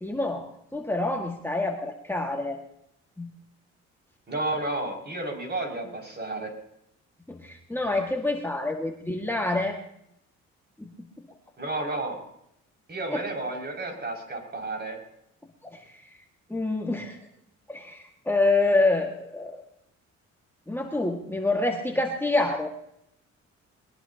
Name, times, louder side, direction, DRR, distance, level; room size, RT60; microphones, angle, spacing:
voice 1, 0.0-0.5 0.7-2.6 3.2-3.3 7.3-9.8 10.8-10.9 13.1-13.2 15.7-15.8 16.5-17.2 17.7-19.6 20.7-22.7, left 2 dB, 5° left, 0 dB, 1.9 m, -27 dB
voice 2, 4.3-6.5 11.6-12.2 12.9-15.0, right 2 dB, 35° right, 1 dB, 6.3 m, -31 dB
21.5 x 20.0 x 2.9 m, 0.77 s
cardioid pair, 90°, 30 cm